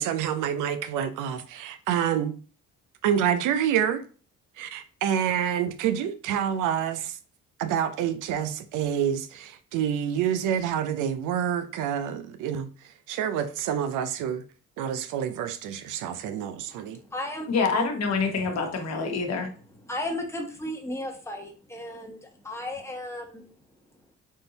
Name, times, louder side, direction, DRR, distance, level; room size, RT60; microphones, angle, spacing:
voice 1, 0.0-2.4 3.0-4.1 4.6-7.2 7.6-12.7 13.1-14.4 14.8-17.0, right 9 dB, 85° right, 0.5 m, -27 dB
voice 2, 16.9-17.5 19.4-23.5, left 1 dB, 10° left, 1.0 m, -35 dB
voice 3, 17.5-19.5, left 4 dB, 60° left, 1.1 m, -26 dB
3.7 x 2.6 x 3.9 m
cardioid pair, 90°, 30 cm